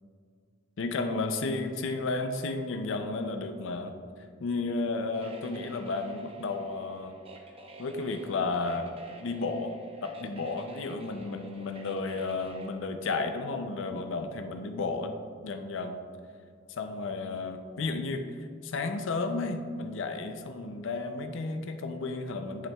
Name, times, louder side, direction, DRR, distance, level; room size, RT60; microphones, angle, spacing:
voice 1, 0.8-3.9 4.4-7.2 7.8-9.8 10.0-15.1 15.4-16.0 16.7-18.2 18.6-22.7, left 3 dB, 70° left, 7 dB, 0.5 m, -33 dB
sound 1, 5.1-12.7, right 2 dB, 30° right, 0.8 m, -50 dB
8.5 x 6.9 x 2.3 m, 2.2 s
head